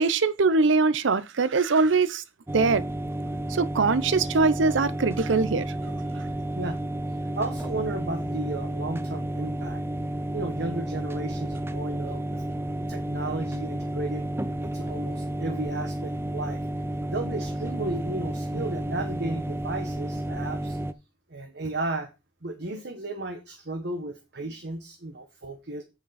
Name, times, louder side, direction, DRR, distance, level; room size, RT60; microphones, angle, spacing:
voice 1, 0.0-2.2 2.5-2.8 3.5-5.7, right 4 dB, 85° right, 0.6 m, -22 dB
sound 1, 2.5-20.9, right 1 dB, 15° right, 0.4 m, -31 dB
voice 2, 7.2-9.8 10.3-12.4 12.9-14.3 14.6-16.7 17.1-20.8 21.3-22.1 22.4-25.8, right 2 dB, 60° right, 1.2 m, -34 dB
7.9 x 7.1 x 4.2 m
head